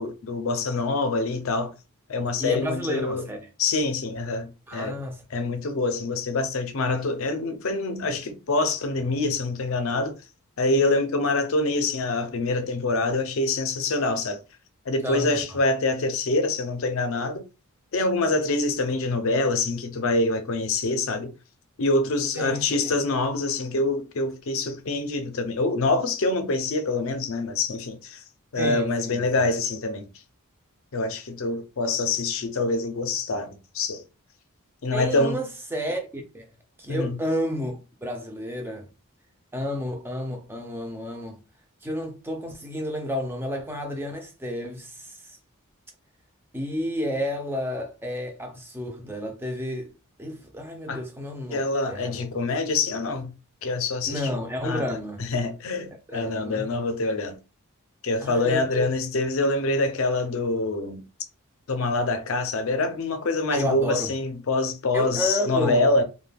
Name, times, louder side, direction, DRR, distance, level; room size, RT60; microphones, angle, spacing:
voice 1, 0.0-1.7 2.1-3.2 3.6-5.0 5.3-10.2 10.6-14.4 14.9-17.4 17.9-21.3 21.8-28.2 28.5-30.0 30.9-34.0 34.8-35.4 36.9-37.2 50.9-51.0 51.5-53.3 53.6-54.4 54.6-54.8 55.2-57.4 58.0-61.0 61.7-66.0, left 2 dB, 60° left, 0.5 m, -25 dB
voice 2, 2.4-3.5 4.7-5.2 15.0-15.4 22.4-23.0 28.6-29.5 34.9-36.5 36.8-38.9 39.5-41.4 41.8-45.4 46.5-49.9 50.2-52.3 54.1-55.3 56.1-56.7 58.2-58.9 63.5-64.1 64.9-65.9, equal, 10° right, 0.4 m, -31 dB
2.2 x 2.2 x 3.3 m
head